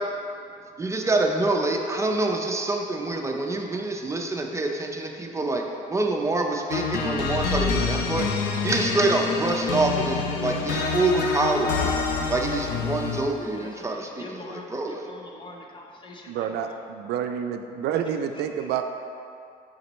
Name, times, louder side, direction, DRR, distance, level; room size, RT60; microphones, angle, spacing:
voice 1, 0.8-5.6 5.9-8.3 8.6-11.9 12.3-15.1, right 2 dB, 15° right, 2 dB, 0.5 m, -26 dB
sound 1, 6.7-13.4, left 4 dB, 85° left, 0.6 m, -27 dB
voice 2, 13.5-16.8, left 2 dB, 30° left, 0 dB, 0.8 m, -44 dB
voice 3, 16.3-18.8, right 8 dB, 75° right, 7 dB, 0.4 m, -28 dB
6.3 x 5.2 x 3.1 m, 2.5 s
cardioid pair, 110°, 17 cm